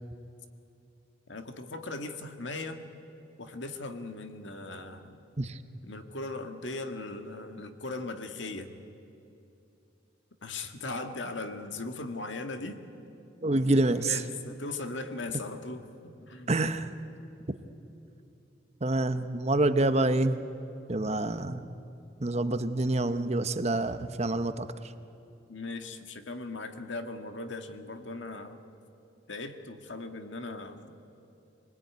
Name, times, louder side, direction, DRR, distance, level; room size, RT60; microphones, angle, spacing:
voice 1, 1.3-2.8 3.4-5.2 5.8-8.8 10.4-12.8 13.4-15.9 16.3-16.5 25.5-28.6 29.3-30.9, left 2 dB, 75° left, 7 dB, 1.8 m, -38 dB
voice 2, 13.4-14.2 16.5-16.9 18.8-20.4 20.9-21.7 22.2-24.7, right 2 dB, 35° right, 10 dB, 0.9 m, -27 dB
25.5 x 20.0 x 9.4 m, 2.7 s
head